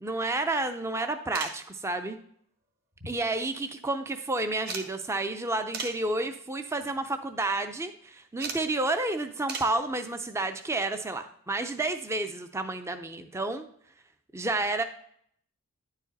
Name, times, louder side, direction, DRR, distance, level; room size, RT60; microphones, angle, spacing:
voice 1, 0.0-2.2 3.0-13.7 14.3-14.8, right 2 dB, 10° right, 8 dB, 0.4 m, -30 dB
sound 1, 1.3-1.7 2.9-3.5 3.8-3.9 4.7-4.9 5.7-6.0 6.8-7.0 8.4-8.7 9.5-9.8 11.4-11.5 12.9-13.0 13.2-13.3, right 4 dB, 45° right, 1.1 m, -37 dB
9.9 x 4.9 x 4.0 m, 0.66 s
head